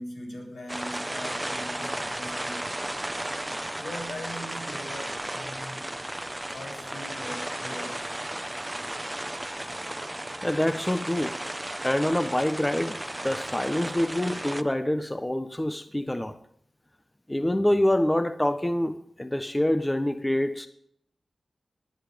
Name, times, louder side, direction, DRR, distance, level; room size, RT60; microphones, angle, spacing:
voice 1, 0.0-2.7 3.8-6.0 6.5-8.1, left 1 dB, 80° left, 0 dB, 8.0 m, -40 dB
sound 1, 0.7-14.6, right 1 dB, 15° right, 1.1 m, -34 dB
voice 2, 10.4-11.4 11.8-16.4 17.3-20.7, left 1 dB, 15° left, 10 dB, 1.1 m, -26 dB
20.0 x 11.0 x 5.2 m, 0.66 s
wide cardioid pair, 75°, 0 cm